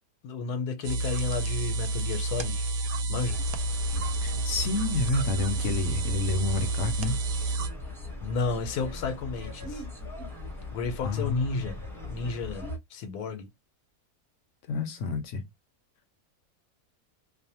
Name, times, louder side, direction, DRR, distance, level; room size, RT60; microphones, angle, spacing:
voice 1, 0.2-2.6 3.1-3.4 8.2-9.8 10.7-13.5, left 4 dB, 85° left, 1.2 m, -32 dB
sound 1, 0.8-7.7, right 2 dB, 70° right, 1.0 m, -30 dB
sound 2, 3.3-12.8, left 2 dB, 5° left, 0.5 m, -39 dB
voice 2, 4.2-7.1 11.0-11.8 14.7-15.4, left 4 dB, 65° left, 0.8 m, -29 dB
2.6 x 2.1 x 2.7 m
omnidirectional pair, 1.7 m